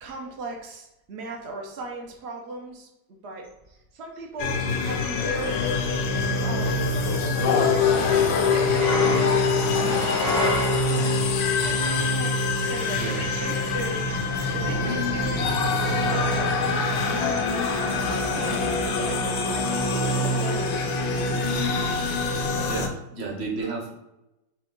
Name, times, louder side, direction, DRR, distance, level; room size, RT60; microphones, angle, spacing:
voice 1, 0.0-3.5 3.9-5.6 5.9-6.0 6.4-8.0 8.3-11.4 11.6-14.2 14.5-15.5 15.9-16.5 16.9-19.2 19.5-21.0, right 2 dB, 90° right, 0 dB, 0.5 m, -37 dB
sound 1, 4.4-22.9, left 3 dB, 90° left, 1.4 m, -24 dB
sound 2, 8.8-11.4, left 1 dB, 40° left, 0.5 m, -28 dB
voice 2, 22.3-23.9, right 3 dB, 50° right, -1 dB, 0.8 m, -33 dB
6.2 x 2.2 x 3.7 m, 0.91 s
omnidirectional pair, 2.0 m